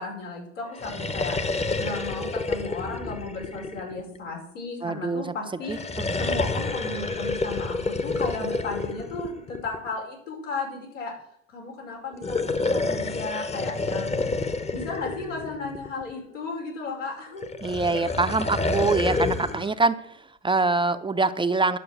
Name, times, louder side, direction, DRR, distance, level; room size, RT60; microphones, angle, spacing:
voice 1, 0.0-5.8 6.2-11.1 11.5-14.1 14.7-17.4, left 3 dB, 85° left, -1 dB, 5.1 m, -35 dB
sound 1, 0.7-4.3 5.6-9.9 12.1-16.1 17.4-19.7, left 3 dB, 15° left, 1.0 m, -29 dB
voice 2, 4.8-5.3 5.7-6.1 17.6-21.8, right 3 dB, 15° right, 10 dB, 0.6 m, -25 dB
11.0 x 6.7 x 8.1 m, 0.71 s
hypercardioid pair, 80°, 37 cm